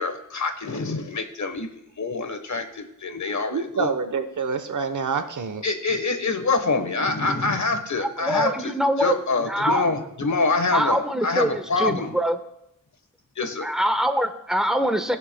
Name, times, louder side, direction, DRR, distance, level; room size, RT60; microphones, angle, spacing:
voice 1, 0.0-1.7 2.0-3.9 5.6-12.2 13.4-13.7, left 3 dB, 60° left, 7 dB, 1.3 m, -26 dB
voice 2, 3.5-5.6, right 5 dB, 65° right, 8 dB, 1.0 m, -27 dB
voice 3, 8.2-9.1 9.5-9.8 10.7-12.4 13.6-15.2, equal, ahead, 6 dB, 1.2 m, -23 dB
19.5 x 6.8 x 2.3 m, 0.80 s
cardioid pair, 55°, 32 cm